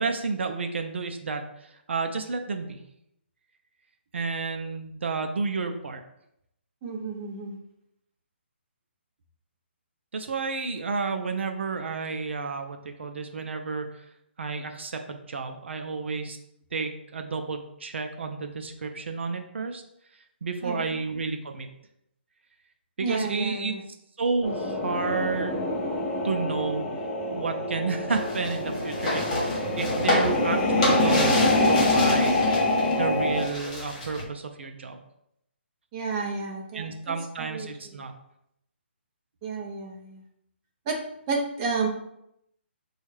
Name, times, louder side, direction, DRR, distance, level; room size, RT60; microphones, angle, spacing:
voice 1, 0.0-2.8 4.1-6.0 10.1-14.0 14.4-16.4 16.7-19.8 20.4-21.7 23.0-23.7 24.2-25.6 26.2-26.9 27.3-32.4 32.9-35.0 36.7-38.1, right 4 dB, 70° right, 6 dB, 0.5 m, -31 dB
voice 2, 6.8-7.6 20.6-20.9 23.0-23.8 35.9-38.0 39.4-40.2 40.9-41.9, right 4 dB, 25° right, -1 dB, 0.7 m, -32 dB
sound 1, 24.4-33.5, left 2 dB, 10° left, 0.5 m, -25 dB
sound 2, 28.1-32.9 33.2-34.2, left 1 dB, 35° left, 1.2 m, -30 dB
6.2 x 2.4 x 3.2 m, 0.79 s
hypercardioid pair, 165°, 6 cm